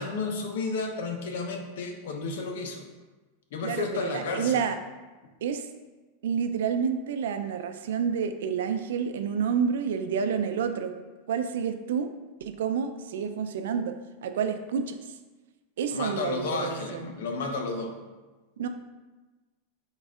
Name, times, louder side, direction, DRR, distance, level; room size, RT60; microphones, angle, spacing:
voice 1, 0.0-2.8 3.5-4.7 15.9-17.9, left 4 dB, 70° left, 4 dB, 0.9 m, -32 dB
voice 2, 3.6-4.8 5.4-5.6 6.2-10.9 11.3-12.1 12.4-13.9 14.2-15.0 15.8-17.0 18.6-18.7, right 7 dB, 80° right, 8 dB, 0.5 m, -29 dB
6.3 x 3.9 x 3.7 m, 1.2 s
supercardioid pair, 175°, 0 cm